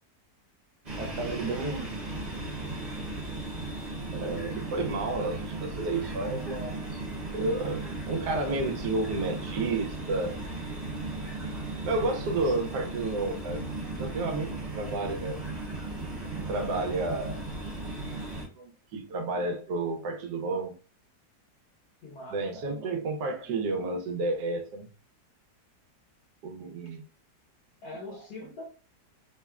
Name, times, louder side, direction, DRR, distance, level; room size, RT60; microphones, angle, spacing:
sound 1, 0.9-18.5, right 2 dB, 30° right, 0.9 m, -36 dB
voice 1, 1.0-1.9 4.1-7.0 7.3-10.4 11.8-13.6 13.9-15.4 16.1-17.4 18.6-20.7 22.3-24.9 26.4-27.0, right 2 dB, 85° right, 1.2 m, -31 dB
voice 2, 22.0-22.7 27.8-28.6, left 2 dB, 70° left, 1.5 m, -42 dB
3.3 x 2.0 x 2.3 m
omnidirectional pair, 1.8 m